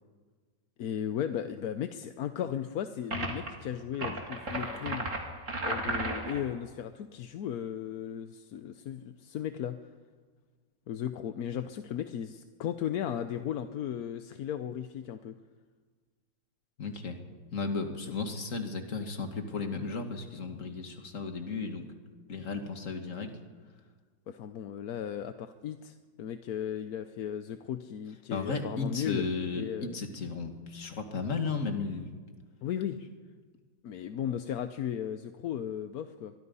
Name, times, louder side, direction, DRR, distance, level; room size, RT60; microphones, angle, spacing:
voice 1, 0.8-5.1 5.6-9.8 10.9-15.4 24.3-29.2 29.5-30.0 30.8-30.9 32.6-33.0 33.8-36.3, left 9 dB, 60° left, 10 dB, 1.1 m, -36 dB
sound 1, 3.1-3.5 3.9-6.5, right 2 dB, 40° right, 3.2 m, -34 dB
voice 2, 16.8-17.2 17.5-21.9 22.3-23.3 28.3-32.1, left 4 dB, 45° left, 6 dB, 2.2 m, -34 dB
23.5 x 22.5 x 5.5 m, 1.5 s
omnidirectional pair, 2.0 m